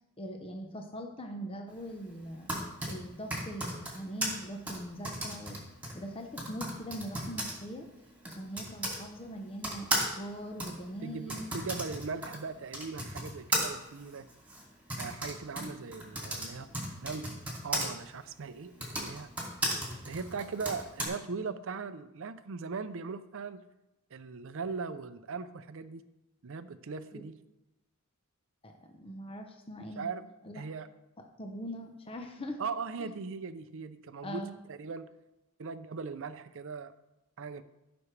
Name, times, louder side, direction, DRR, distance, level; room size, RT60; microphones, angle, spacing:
voice 1, 0.2-2.5 2.9-5.6 5.9-7.9 8.2-11.5 27.1-27.2 28.6-30.1 30.4-30.6 31.2-32.6 33.0-33.1 34.2-34.6, equal, 25° left, 3 dB, 0.8 m, -42 dB
Typing, 2.2-9.0 9.6-17.9 18.7-21.1, right 1 dB, 10° right, 2.5 m, -36 dB
voice 2, 11.0-14.3 15.0-16.7 17.0-17.3 17.6-19.3 20.1-23.6 24.1-26.1 26.4-27.4 30.0-30.2 30.5-30.9 32.6-35.1 35.6-36.9 37.4-37.6, right 4 dB, 65° right, 12 dB, 0.5 m, -39 dB
14.5 x 6.0 x 3.3 m, 0.96 s
head